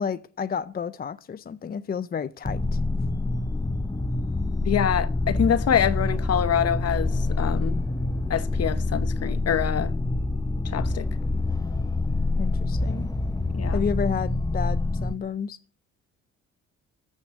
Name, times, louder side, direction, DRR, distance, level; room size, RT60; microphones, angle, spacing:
voice 1, 0.0-2.8 12.4-13.1 13.7-15.6, left 6 dB, 30° left, 0.5 m, -31 dB
sound 1, 2.5-15.1, left 2 dB, 10° left, 0.9 m, -26 dB
voice 2, 4.6-7.8 8.3-9.9 10.6-11.1 13.5-13.8, left 9 dB, 55° left, 1.1 m, -25 dB
14.0 x 6.4 x 8.5 m
cardioid pair, 90°, 30 cm